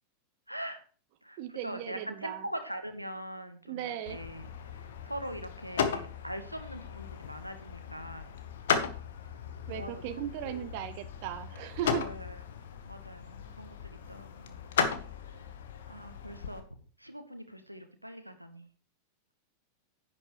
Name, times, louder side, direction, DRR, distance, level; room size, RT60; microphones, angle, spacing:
voice 1, 0.5-0.8 1.2-8.4 9.7-10.7 11.9-12.4 12.8-14.6 15.9-16.6 17.0-18.7, equal, 90° right, 8 dB, 1.1 m, -42 dB
voice 2, 1.4-2.4 3.7-4.2 9.7-12.0, right 11 dB, 45° right, 10 dB, 0.7 m, -37 dB
sound 1, 4.1-16.6, left 7 dB, 60° left, 1.2 m, -36 dB
10.5 x 9.1 x 3.1 m, 0.40 s
figure-of-eight pair, 90°, 0 cm